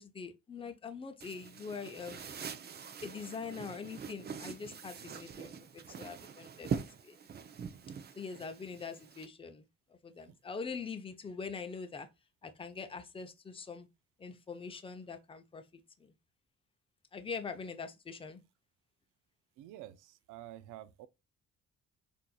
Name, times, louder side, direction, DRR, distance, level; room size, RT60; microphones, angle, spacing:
voice 1, 0.0-2.3 3.0-6.7 7.0-7.2 8.1-12.1 12.4-13.9 14.2-15.6 16.0-16.1 17.1-18.4, left 5 dB, 20° left, 0.5 m, -43 dB
sound 1, 1.2-9.3, right 6 dB, 35° right, 0.5 m, -43 dB
voice 2, 19.6-21.1, right 13 dB, 90° right, 0.5 m, -49 dB
4.3 x 2.6 x 2.2 m
cardioid pair, 90°, 30 cm